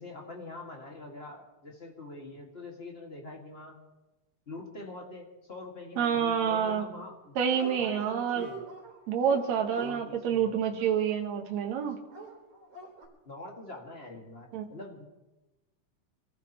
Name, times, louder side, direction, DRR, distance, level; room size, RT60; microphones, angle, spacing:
voice 1, 0.0-3.8 4.5-7.3 7.8-8.6 9.8-10.5 13.2-15.0, left 2 dB, 25° left, 0 dB, 1.7 m, -44 dB
voice 2, 6.0-6.8 7.4-8.5 9.1-12.0 14.5-14.7, right 8 dB, 65° right, 3 dB, 2.5 m, -28 dB
Dog, 6.7-7.2 7.4-7.8 8.1-11.5 12.1-13.1, right 1 dB, 50° right, 4.6 m, -44 dB
27.5 x 14.5 x 3.0 m, 1.0 s
omnidirectional pair, 3.7 m